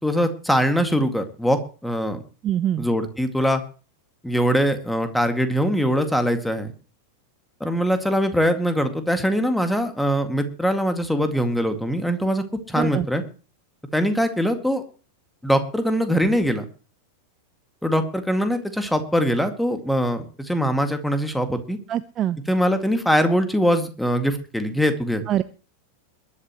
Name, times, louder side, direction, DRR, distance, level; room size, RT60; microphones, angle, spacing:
voice 1, 0.0-2.2 2.8-3.6 4.2-6.7 7.6-13.2 13.9-14.8 15.4-16.6 17.8-21.8 22.5-25.2, equal, ahead, 8 dB, 2.2 m, -22 dB
voice 2, 2.4-2.9 12.7-13.1 21.9-22.4 25.3-25.4, right 11 dB, 30° right, 14 dB, 0.6 m, -24 dB
22.0 x 11.5 x 3.1 m, 0.36 s
figure-of-eight pair, 90°, 0 cm